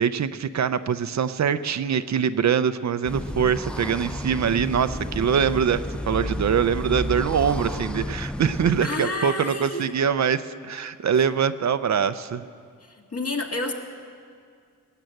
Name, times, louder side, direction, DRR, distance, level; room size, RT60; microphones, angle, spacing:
voice 1, 0.0-12.4, right 7 dB, 55° right, 12 dB, 0.5 m, -23 dB
sound 1, 3.0-8.9, left 1 dB, 5° left, 0.3 m, -31 dB
voice 2, 8.8-9.9 12.8-13.7, left 2 dB, 45° left, 2 dB, 1.8 m, -30 dB
18.5 x 9.2 x 7.7 m, 2.2 s
cardioid pair, 80°, 33 cm